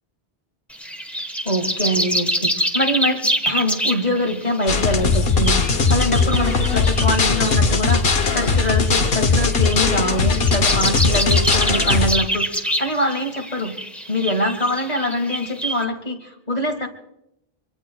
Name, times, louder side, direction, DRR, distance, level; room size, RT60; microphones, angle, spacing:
sound 1, 0.7-15.8, equal, ahead, 1.1 m, -27 dB
voice 1, 1.4-13.8 14.1-16.9, left 1 dB, 40° left, 4 dB, 2.1 m, -24 dB
sound 2, 4.7-12.1, left 4 dB, 65° left, 1.2 m, -19 dB
25.0 x 24.0 x 2.3 m, 0.80 s
omnidirectional pair, 1.1 m